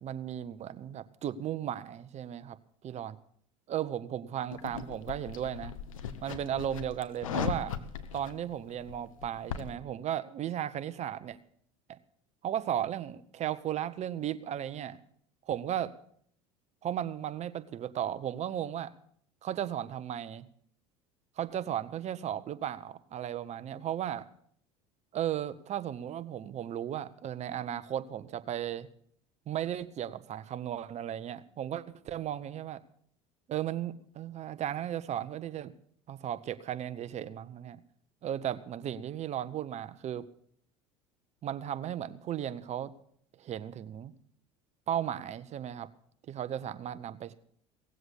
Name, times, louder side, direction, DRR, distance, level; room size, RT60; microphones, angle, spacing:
voice 1, 0.0-2.6 2.8-3.2 3.7-5.7 6.2-7.7 8.1-11.4 11.9-12.0 12.4-15.0 15.5-15.9 16.8-18.9 19.4-20.4 21.4-24.3 25.1-28.9 29.5-32.8 33.5-35.7 36.1-37.8 38.2-40.3 41.4-42.9 43.4-44.1 44.9-45.9 46.3-47.3, right 10 dB, 40° right, 14 dB, 1.0 m, -35 dB
sound 1, 4.5-9.8, left 7 dB, 90° left, 1.1 m, -38 dB
17.5 x 7.8 x 8.3 m, 0.65 s
hypercardioid pair, 85°, 17 cm